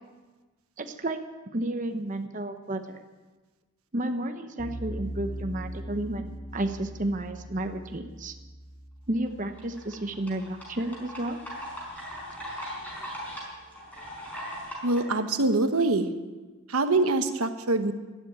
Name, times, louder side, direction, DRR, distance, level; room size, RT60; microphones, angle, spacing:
voice 1, 0.8-1.2 1.5-3.0 3.9-8.3 9.1-11.4, right 1 dB, 35° right, 6 dB, 0.9 m, -32 dB
sound 1, 4.6-11.7, right 1 dB, 90° left, 4.6 m, -41 dB
sound 2, 9.3-15.0, equal, 5° left, 5.0 m, -39 dB
voice 2, 14.8-16.1 16.7-17.9, right 2 dB, 85° right, 8 dB, 1.2 m, -24 dB
12.5 x 12.0 x 9.2 m, 1.3 s
head